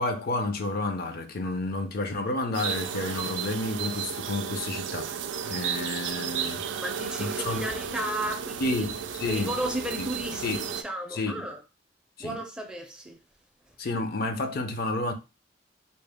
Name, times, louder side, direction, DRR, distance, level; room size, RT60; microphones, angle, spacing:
voice 1, 0.0-5.1 5.4-6.8 7.2-7.7 8.6-9.6 10.0-10.1 10.4-10.6 11.1-11.5 12.2-12.4 13.8-15.1, left 2 dB, 55° left, 0.5 m, -30 dB
sound 1, 2.5-10.8, right 7 dB, 80° right, 0.4 m, -33 dB
voice 2, 6.8-8.8 9.3-11.6 12.2-13.2, right 1 dB, 5° right, 0.5 m, -34 dB
4.0 x 2.0 x 3.4 m
head